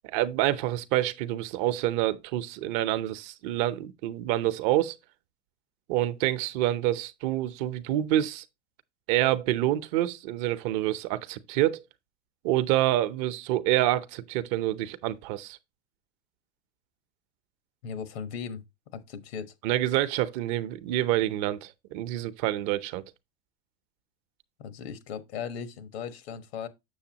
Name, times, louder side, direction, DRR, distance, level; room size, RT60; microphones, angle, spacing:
voice 1, 0.0-5.0 5.9-8.4 9.1-11.8 12.4-15.6 19.6-23.0, right 14 dB, 50° right, 0.8 m, -27 dB
voice 2, 17.8-18.6 18.9-19.5 24.6-26.7, left 7 dB, 75° left, 1.4 m, -37 dB
7.1 x 6.8 x 2.9 m
supercardioid pair, 130°, 31 cm